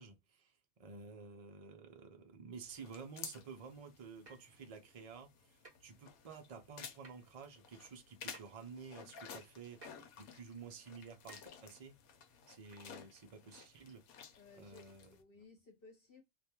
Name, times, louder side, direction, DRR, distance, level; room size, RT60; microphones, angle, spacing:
voice 1, 0.0-12.0 12.5-14.0 14.6-15.1, right 5 dB, 70° right, 0.3 m, -52 dB
sound 1, 2.7-15.2, left 7 dB, 85° left, 1.1 m, -54 dB
sound 2, 4.3-4.5 5.6-5.8 7.0-7.3 8.3-8.4 9.8-10.1 11.3-11.5 12.7-12.8 13.4-13.5, right 3 dB, 30° right, 0.6 m, -57 dB
voice 2, 14.4-16.2, left 4 dB, 45° left, 1.0 m, -60 dB
2.5 x 2.3 x 2.8 m
omnidirectional pair, 1.5 m